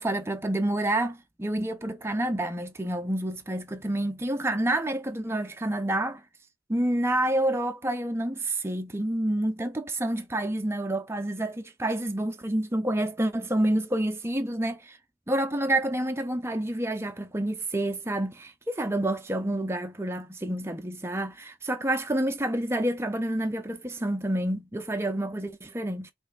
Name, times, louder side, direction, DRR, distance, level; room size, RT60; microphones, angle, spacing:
voice 1, 0.0-6.2 6.7-15.0 15.3-26.1, right 1 dB, 10° right, 0.5 m, -28 dB
5.3 x 3.2 x 2.5 m
head